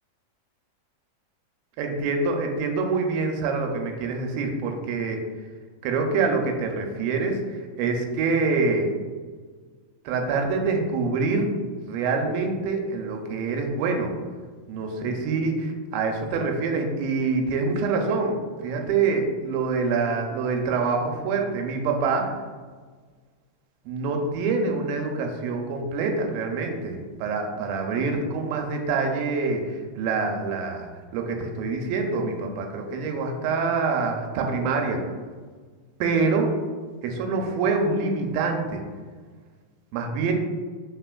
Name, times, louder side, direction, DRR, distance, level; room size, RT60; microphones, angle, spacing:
voice 1, 1.8-5.2 5.8-7.4 7.8-8.9 10.1-11.5 11.9-14.1 14.7-15.5 15.9-22.3 23.9-35.0 36.0-36.5 37.0-38.8 39.9-40.3, right 4 dB, 85° right, 3 dB, 2.3 m, -25 dB
4.9 x 3.7 x 2.3 m, 1.5 s
omnidirectional pair, 4.1 m